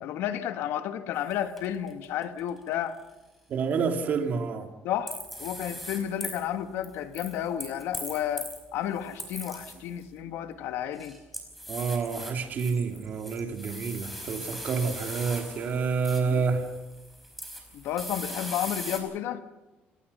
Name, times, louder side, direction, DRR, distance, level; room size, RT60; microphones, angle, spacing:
voice 1, 0.0-3.0 4.8-11.2 17.7-19.4, left 10 dB, 80° left, 1.7 m, -32 dB
sound 1, 1.3-1.4 1.6-2.6 5.1-6.4 6.8-8.6 9.0-10.0 10.8-19.0, equal, ahead, 4.8 m, -40 dB
voice 2, 3.5-4.7 11.7-16.7, right 5 dB, 45° right, 2.7 m, -28 dB
29.5 x 18.5 x 5.6 m
cardioid pair, 155°, 4 cm